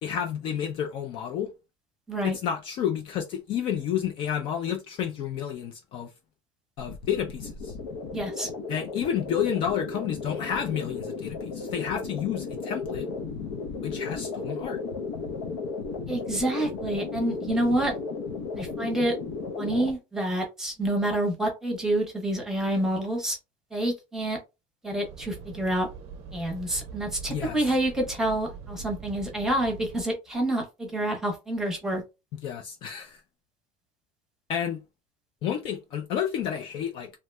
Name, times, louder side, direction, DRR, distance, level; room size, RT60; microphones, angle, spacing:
voice 1, 0.0-1.5 2.2-6.1 6.8-7.7 8.7-13.1 13.8-14.8 27.3-27.6 32.4-33.2 34.5-34.8 35.4-37.1, left 9 dB, 40° left, 0.3 m, -30 dB
sound 1, 6.8-19.9, left 4 dB, 85° left, 0.6 m, -35 dB
voice 2, 8.1-8.5 16.1-17.9 18.6-19.1 19.6-23.4 23.7-24.4 24.8-25.9 26.3-32.0, right 1 dB, 5° right, 0.8 m, -28 dB
sound 2, 25.0-30.0, right 5 dB, 45° right, 0.5 m, -42 dB
2.7 x 2.1 x 3.2 m
cardioid pair, 170°, 14 cm